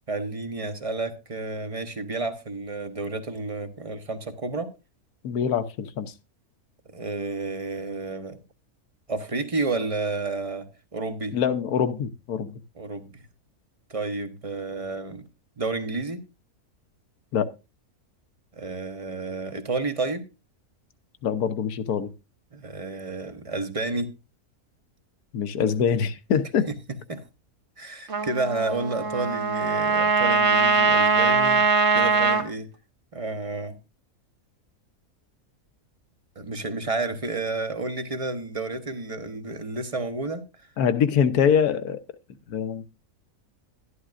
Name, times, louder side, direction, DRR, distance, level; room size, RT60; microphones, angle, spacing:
voice 1, 0.1-4.7 6.9-8.4 9.1-10.7 10.9-11.4 12.8-13.2 13.9-15.2 15.6-16.2 18.5-20.3 22.5-24.1 26.7-26.8 27.1-27.2 27.8-31.7 31.9-32.7 33.1-33.7 36.4-40.4, right 3 dB, 25° right, 0.9 m, -30 dB
voice 2, 5.2-6.1 11.3-12.5 17.3-17.5 21.2-22.1 25.3-26.7 40.8-42.0 42.5-42.9, left 7 dB, 80° left, 1.4 m, -24 dB
Trumpet, 28.1-32.4, right 4 dB, 50° right, 1.5 m, -21 dB
12.0 x 11.5 x 2.5 m
omnidirectional pair, 1.6 m